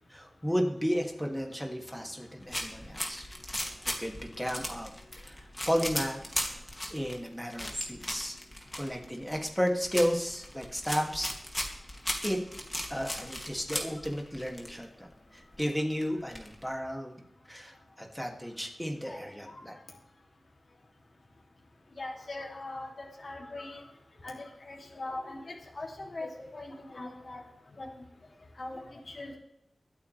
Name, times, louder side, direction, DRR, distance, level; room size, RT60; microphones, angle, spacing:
voice 1, 0.1-3.2 4.0-6.6 6.9-8.4 8.7-11.3 12.2-12.4 12.9-19.8, equal, ahead, 1 dB, 2.5 m, -33 dB
sound 1, 2.4-14.8 15.1-15.2 15.4-16.7, left 1 dB, 20° left, 2.5 m, -37 dB
voice 2, 22.0-23.8 24.2-27.4 27.8-27.9 28.6-29.4, left 2 dB, 55° left, -1 dB, 2.8 m, -41 dB
24.0 x 8.9 x 3.4 m, 0.84 s
wide cardioid pair, 70°, 0 cm